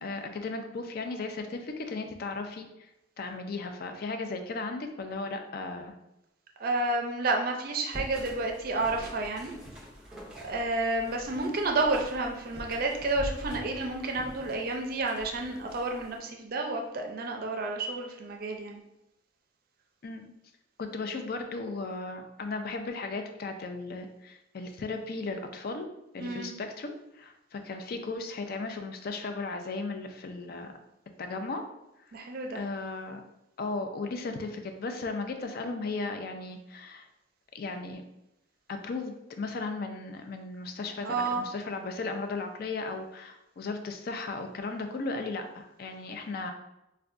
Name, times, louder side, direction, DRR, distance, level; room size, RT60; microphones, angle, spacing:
voice 1, 0.0-2.9 3.2-5.9 20.0-20.3 20.8-25.9 26.1-30.7 31.2-31.6 32.5-33.2 33.6-37.1 37.5-38.0 38.7-46.5, left 3 dB, 50° left, 6 dB, 0.4 m, -36 dB
voice 2, 6.6-9.5 10.4-18.8 26.2-26.5 32.1-32.6 41.0-41.4, right 2 dB, 50° right, 2 dB, 0.5 m, -30 dB
sound 1, 7.9-16.1, equal, 5° right, 0.6 m, -44 dB
4.5 x 2.2 x 2.5 m, 0.90 s
head